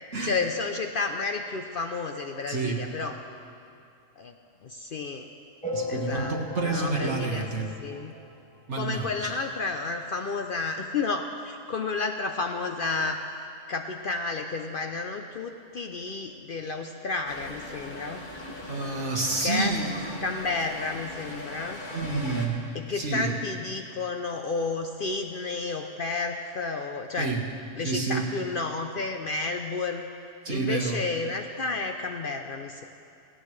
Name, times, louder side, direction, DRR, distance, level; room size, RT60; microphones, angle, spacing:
voice 1, 0.2-3.2 4.2-4.3 4.6-5.3 5.9-6.3 6.6-7.5 7.8-8.1 8.8-13.2 13.7-18.2 19.4-19.7 20.2-21.8 22.7-27.3 27.8-30.1 30.5-32.8, left 3 dB, 55° left, 5 dB, 0.7 m, -31 dB
voice 2, 2.5-2.8 5.7-7.7 8.7-9.3 18.7-19.9 21.9-22.6 22.9-23.3 27.2-27.4 27.8-28.2 30.4-31.0, right 3 dB, 65° right, 0 dB, 1.8 m, -29 dB
sound 1, 5.6-8.5 9.0-9.1 9.2-9.4 9.7-9.8 10.6-10.7 11.2-11.3, left 2 dB, 5° left, 0.9 m, -36 dB
sound 2, 17.2-22.5, left 1 dB, 40° left, 1.6 m, -40 dB
17.5 x 16.5 x 3.2 m, 2.5 s
omnidirectional pair, 1.3 m